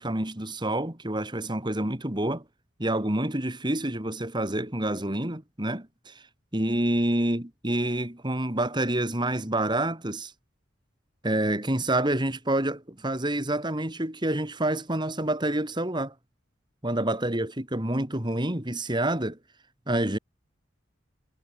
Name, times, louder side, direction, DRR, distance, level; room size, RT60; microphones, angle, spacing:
voice 1, 0.0-2.4 2.8-6.1 6.5-10.3 11.2-16.1 16.8-19.4 19.9-20.2, right 1 dB, 25° right, 2.7 m, -28 dB
head